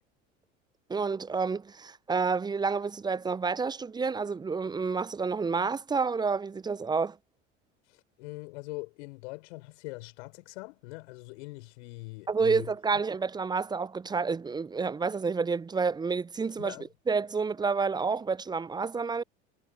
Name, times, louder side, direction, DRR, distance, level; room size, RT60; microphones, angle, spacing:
voice 1, 0.9-7.2 12.3-16.7 17.1-19.2, right 5 dB, 10° right, 0.5 m, -29 dB
voice 2, 7.9-12.7 16.6-16.9, left 25 dB, 65° left, 6.2 m, -42 dB
figure-of-eight pair, 70°, 38 cm